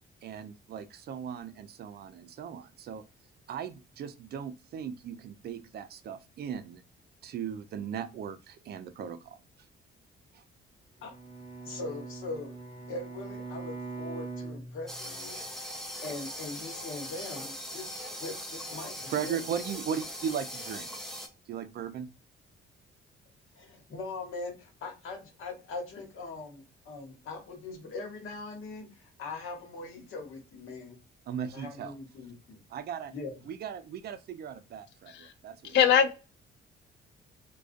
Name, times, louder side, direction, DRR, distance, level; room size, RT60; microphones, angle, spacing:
voice 1, 0.2-3.0 3.5-6.8 7.2-9.4 10.3-10.4 19.1-20.9 21.5-22.1 31.3-31.9 32.7-33.1 33.5-35.8, right 8 dB, 50° right, 0.4 m, -37 dB
Bowed string instrument, 11.0-15.4, right 3 dB, 20° left, 0.9 m, -42 dB
voice 2, 11.6-12.5 12.9-15.4 16.0-17.9 18.2-19.4 23.5-31.0 31.5-32.6 33.1-33.4, left 3 dB, 75° left, 1.1 m, -41 dB
sound 1, 14.9-21.3, equal, ahead, 0.5 m, -40 dB
voice 3, 35.7-36.1, left 8 dB, 60° left, 0.4 m, -21 dB
2.3 x 2.2 x 2.4 m
cardioid pair, 140°, 21 cm